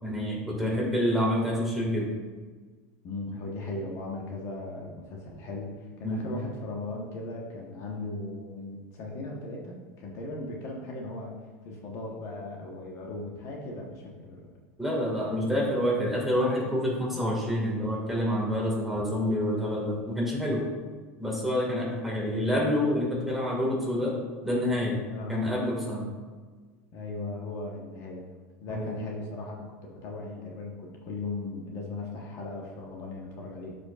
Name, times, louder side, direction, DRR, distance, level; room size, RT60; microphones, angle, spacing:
voice 1, 0.0-2.1 6.0-6.3 14.8-20.7 21.2-24.1 24.4-25.0 25.3-26.1 28.7-29.0, left 1 dB, ahead, -4 dB, 1.9 m, -27 dB
voice 2, 3.0-5.7 6.0-11.3 11.6-14.5 15.3-15.6 25.1-25.4 26.9-28.2 28.6-29.6 29.9-33.8, left 2 dB, 45° left, -1 dB, 1.1 m, -38 dB
11.5 x 5.2 x 2.4 m, 1.4 s
supercardioid pair, 140°, 7 cm